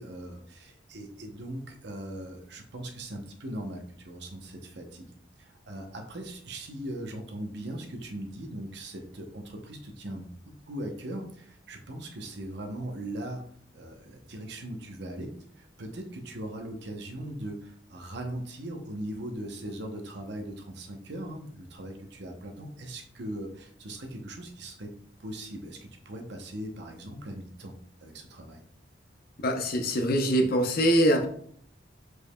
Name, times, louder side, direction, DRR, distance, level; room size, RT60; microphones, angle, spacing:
voice 1, 0.0-5.1 5.4-10.3 10.7-13.4 13.7-24.9 25.2-27.7 28.0-28.6, right 1 dB, 65° right, 3 dB, 0.8 m, -39 dB
voice 2, 29.4-31.3, equal, 55° left, 4 dB, 0.7 m, -23 dB
5.1 x 4.7 x 2.2 m, 0.62 s
head